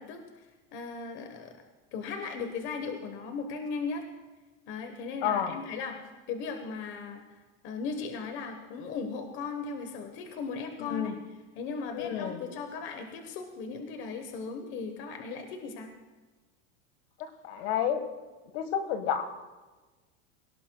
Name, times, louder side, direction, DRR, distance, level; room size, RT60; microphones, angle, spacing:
voice 1, 0.0-1.5 1.9-4.0 4.7-6.0 6.3-11.2 11.5-15.9, left 4 dB, 35° left, 5 dB, 1.2 m, -37 dB
voice 2, 5.2-5.6 10.8-11.1 11.9-12.4 17.4-18.0 18.5-19.2, left 9 dB, 60° left, 8 dB, 1.6 m, -30 dB
23.0 x 18.0 x 2.3 m, 1.2 s
supercardioid pair, 175°, 34 cm